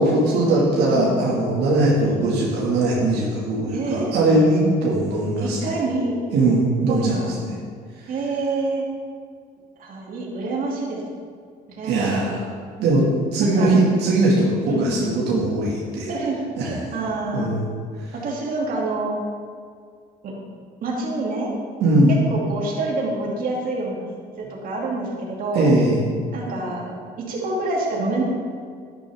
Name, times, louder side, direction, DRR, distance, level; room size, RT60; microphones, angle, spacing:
voice 1, 0.0-5.7 6.3-7.5 11.8-12.5 12.8-13.0 13.3-16.1 16.6-16.7 17.3-17.7 21.8-22.1 25.5-26.0, right 2 dB, 80° right, -5 dB, 2.2 m, -20 dB
voice 2, 0.9-1.2 2.0-2.3 3.7-4.1 5.4-6.2 6.9-7.4 8.1-8.8 9.8-11.0 11.7-12.3 13.4-14.0 14.7-14.8 16.1-16.4 16.6-17.5 18.2-19.2 20.2-20.3 20.8-21.5 22.1-24.1 24.4-25.7 26.3-26.9 27.2-28.2, right 2 dB, 55° right, -3 dB, 2.7 m, -27 dB
11.0 x 10.5 x 3.7 m, 2.1 s
cardioid pair, 110°, 17 cm